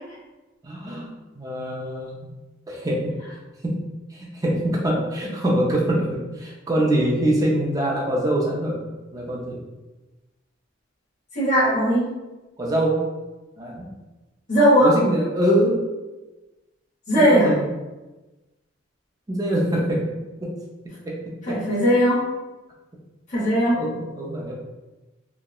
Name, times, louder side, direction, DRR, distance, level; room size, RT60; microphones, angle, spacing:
voice 1, 0.6-2.3 2.7-3.1 3.6-3.8 4.1-8.8 9.1-9.6 12.6-13.1 13.6-14.0 14.8-15.8 17.2-17.7 19.3-20.1 20.4-20.6 20.8-21.6 23.7-24.5, right 1 dB, 20° right, -3 dB, 0.4 m, -24 dB
voice 2, 11.3-12.1 14.5-14.9 17.1-17.5 21.5-22.2 23.3-23.8, equal, 40° left, -8 dB, 0.8 m, -18 dB
2.8 x 2.0 x 2.3 m, 1.1 s
head